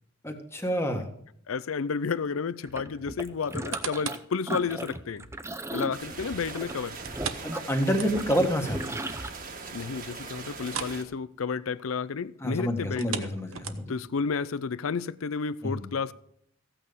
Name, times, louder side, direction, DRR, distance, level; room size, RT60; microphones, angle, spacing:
voice 1, 0.2-1.1 7.4-9.0 12.4-13.9 15.6-15.8, equal, 15° left, 1.6 m, -28 dB
voice 2, 1.5-5.3 5.7-7.0 9.7-13.3 13.9-16.1, left 5 dB, 80° left, 0.5 m, -31 dB
sound 1, 2.6-4.2 4.5-9.3, right 1 dB, 15° right, 0.6 m, -37 dB
sound 2, 3.4-4.3 4.8-4.9 7.0-8.5 8.8-8.9 9.4-9.5 10.6-11.0 11.3-11.5 12.8-14.1 14.7-14.8, right 7 dB, 80° right, 1.0 m, -37 dB
sound 3, 5.9-11.0, right 4 dB, 45° right, 1.6 m, -41 dB
15.0 x 8.9 x 5.2 m
head